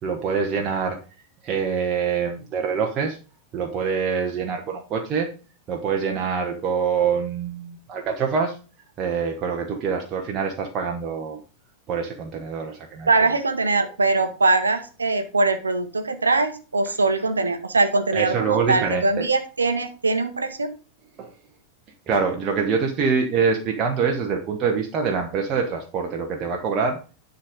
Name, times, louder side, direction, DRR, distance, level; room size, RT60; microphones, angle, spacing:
voice 1, 0.0-1.0 1.4-3.2 3.5-5.3 5.7-8.6 9.0-11.4 11.9-13.3 18.1-19.3 21.2-21.3 22.1-27.0, right 6 dB, 30° right, 2 dB, 1.2 m, -25 dB
voice 2, 13.1-20.7, right 3 dB, 75° right, 7 dB, 1.0 m, -22 dB
10.0 x 4.0 x 5.2 m, 0.36 s
figure-of-eight pair, 90°, 0 cm